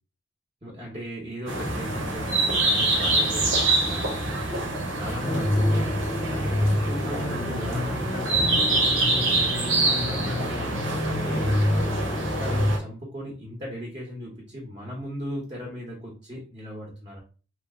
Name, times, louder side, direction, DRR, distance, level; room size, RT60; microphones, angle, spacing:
voice 1, 0.6-4.4 4.9-8.8 9.8-17.2, equal, 25° right, -3 dB, 0.8 m, -37 dB
sound 1, 1.5-12.8, right 2 dB, 75° right, 0.9 m, -26 dB
sound 2, 5.2-12.7, left 1 dB, 35° left, 0.4 m, -28 dB
2.8 x 2.1 x 3.5 m, 0.37 s
head